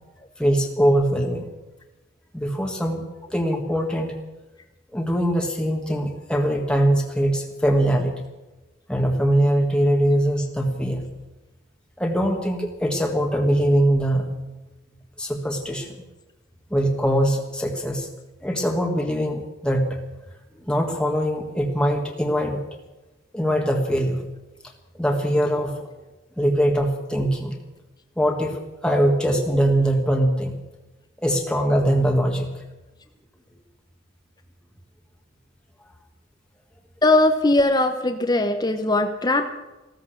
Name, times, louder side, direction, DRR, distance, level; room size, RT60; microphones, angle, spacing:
voice 1, 0.4-1.5 2.3-3.0 3.3-4.2 4.9-8.1 8.9-11.0 12.0-14.6 15.2-16.0 16.7-18.1 18.4-20.0 20.6-22.6 23.3-24.2 25.0-25.8 26.4-27.6 28.2-30.5 31.2-32.5, equal, 5° left, 1 dB, 1.6 m, -22 dB
voice 2, 37.0-39.5, left 2 dB, 20° left, 5 dB, 0.9 m, -20 dB
14.5 x 14.0 x 6.4 m, 1.1 s
head